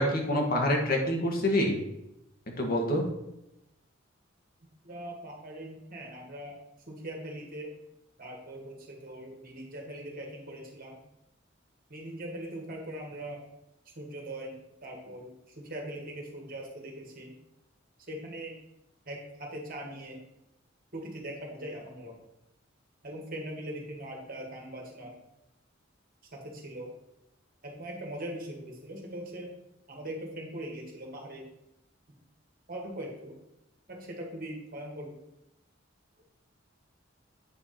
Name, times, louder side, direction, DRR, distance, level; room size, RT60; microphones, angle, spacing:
voice 1, 0.0-1.8 2.6-3.0, left 1 dB, 50° left, 1 dB, 1.6 m, -26 dB
voice 2, 4.8-6.6 6.9-7.7 8.2-11.0 11.9-13.4 14.0-17.3 18.1-18.6 19.1-20.2 20.9-22.1 23.0-25.2 26.3-26.9 27.6-29.5 29.9-31.4 32.7-33.4 33.9-35.1, right 1 dB, 45° right, 0 dB, 2.0 m, -41 dB
8.7 x 4.8 x 4.3 m, 0.89 s
head